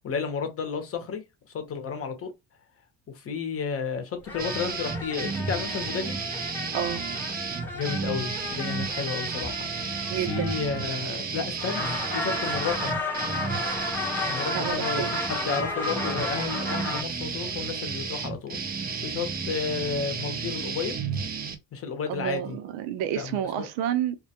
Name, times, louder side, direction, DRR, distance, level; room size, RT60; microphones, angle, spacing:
voice 1, 0.0-1.2 1.5-2.3 3.2-6.2 7.7-9.7 10.3-13.0 14.3-21.0 21.7-22.6 23.1-23.7, left 6 dB, 35° left, 0.8 m, -32 dB
sound 1, 4.3-11.2 11.6-17.0, left 2 dB, 5° left, 0.8 m, -33 dB
sound 2, 4.4-21.6, right 5 dB, 25° right, 0.5 m, -32 dB
voice 2, 6.7-7.0 10.1-10.5 14.5-15.3 22.1-24.2, right 10 dB, 80° right, 0.6 m, -30 dB
2.2 x 2.2 x 2.8 m
supercardioid pair, 105°, 41 cm